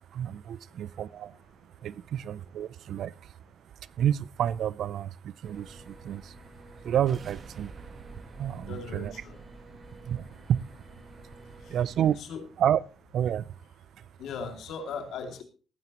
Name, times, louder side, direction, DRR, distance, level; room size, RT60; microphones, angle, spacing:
voice 1, 0.1-1.4 1.8-3.4 3.8-6.4 6.7-7.7 8.4-9.1 9.9-10.7 11.2-12.2 12.6-12.8 13.1-13.5 14.0-14.1, right 10 dB, 70° right, 20 dB, 0.5 m, -30 dB
sound 1, 5.4-12.2, right 1 dB, 30° right, 6.6 m, -50 dB
sound 2, 6.8-11.8, right 5 dB, 50° right, 1.4 m, -51 dB
voice 2, 8.7-9.4 11.7-11.8 12.2-12.4 14.2-15.4, left 5 dB, 75° left, 4 dB, 2.5 m, -38 dB
18.5 x 9.7 x 3.0 m, 0.37 s
cardioid pair, 90°, 0 cm